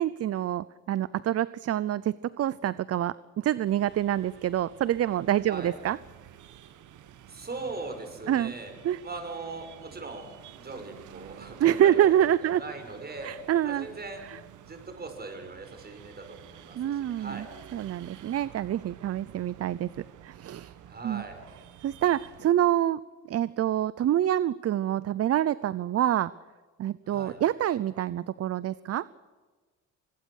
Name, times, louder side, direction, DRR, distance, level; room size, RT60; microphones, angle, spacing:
voice 1, 0.0-6.0 8.3-8.5 8.8-9.0 11.6-12.6 13.2-13.9 14.3-14.4 16.7-17.4 17.7-19.9 20.2-20.7 21.0-21.2 21.8-23.0 23.3-26.3 26.8-29.1, right 11 dB, 55° right, 19 dB, 0.7 m, -26 dB
sound 1, 3.6-22.5, right 10 dB, 80° right, 1.6 m, -51 dB
voice 2, 7.3-8.8 9.0-10.3 10.6-14.2 14.7-17.5 20.9-21.4 27.1-27.4, right 3 dB, 30° right, 7 dB, 5.8 m, -40 dB
24.5 x 20.5 x 6.5 m, 1.4 s
cardioid pair, 90°, 30 cm